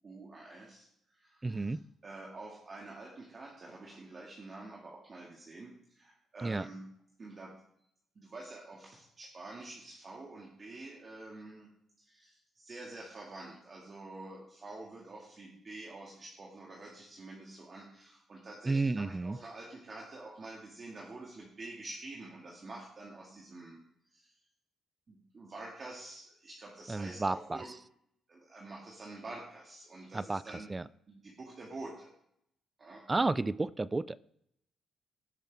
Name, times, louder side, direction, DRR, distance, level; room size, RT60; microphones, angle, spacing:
voice 1, 0.0-0.9 1.2-1.8 2.0-6.8 7.2-7.5 8.2-11.7 12.0-23.8 24.1-24.3 25.1-27.7 28.3-30.7 31.1-32.1 32.8-33.0, right 2 dB, 40° right, -3 dB, 2.0 m, -47 dB
voice 2, 1.4-1.8 6.4-6.7 18.7-19.4 26.9-27.6 30.1-30.4 30.7-30.8 33.1-34.2, right 3 dB, 20° right, 18 dB, 0.3 m, -31 dB
16.5 x 5.9 x 3.5 m, 0.72 s
cardioid pair, 90°, 0 cm